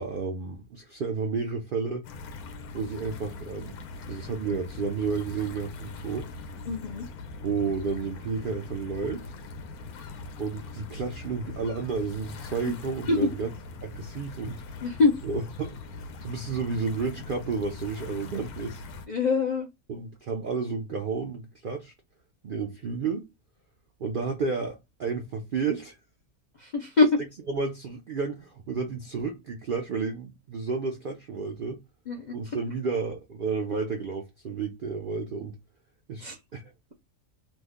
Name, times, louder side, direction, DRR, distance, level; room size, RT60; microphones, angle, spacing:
voice 1, 0.0-2.1 2.7-3.8 4.1-6.3 7.4-9.3 10.4-13.5 13.8-14.6 15.2-18.8 19.9-21.9 22.4-23.3 24.0-26.0 27.5-31.8 32.3-35.5 36.1-36.7, right 4 dB, 70° right, 0.5 m, -31 dB
sound 1, 2.0-19.1, left 3 dB, 80° left, 1.1 m, -41 dB
voice 2, 6.7-7.0 12.7-12.8 13.1-13.3 14.8-15.1 19.1-19.7 26.6-27.2 32.1-32.6 36.2-36.4, left 4 dB, 65° left, 0.4 m, -24 dB
3.1 x 2.1 x 3.4 m
omnidirectional pair, 1.6 m